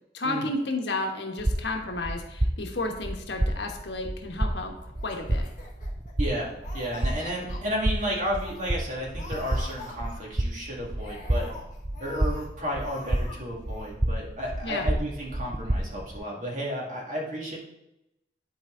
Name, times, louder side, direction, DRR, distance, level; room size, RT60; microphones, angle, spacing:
voice 1, 0.1-5.4 14.6-14.9, left 2 dB, 75° left, 3 dB, 1.2 m, -32 dB
sound 1, 1.4-16.2, right 1 dB, 20° right, 0.4 m, -30 dB
Laughter, 4.9-6.3 6.6-7.6 8.0-8.1 8.4-8.7 9.1-10.5 10.9-12.5 12.8-13.4 13.6-13.9, left 2 dB, 45° left, 1.7 m, -44 dB
voice 2, 6.2-11.5 12.0-17.6, equal, 45° right, -2 dB, 2.0 m, -32 dB
11.0 x 4.5 x 3.8 m, 0.85 s
head